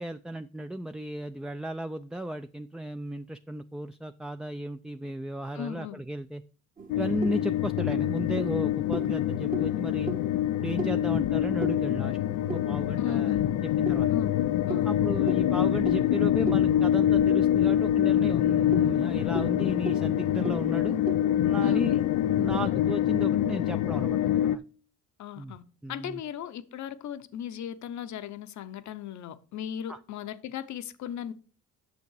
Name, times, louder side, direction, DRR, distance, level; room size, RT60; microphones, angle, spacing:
voice 1, 0.0-6.4 6.9-10.1 10.6-12.2 12.5-13.3 13.6-14.1 14.8-21.0 21.4-22.0 22.4-24.6 25.4-25.6 25.8-26.2 29.9-30.0, right 1 dB, ahead, 0.4 m, -35 dB
voice 2, 5.5-6.0 13.0-13.4 14.1-14.3 14.7-15.0 21.6-21.9 25.2-25.6 25.9-31.3, left 9 dB, 70° left, 0.9 m, -37 dB
sound 1, 6.8-13.2 13.9-17.7 18.1-18.2 18.5-22.1, right 3 dB, 30° right, 1.0 m, -39 dB
sound 2, 6.9-24.6, left 11 dB, 85° left, 0.5 m, -25 dB
8.3 x 6.5 x 4.7 m
cardioid pair, 90°, 30 cm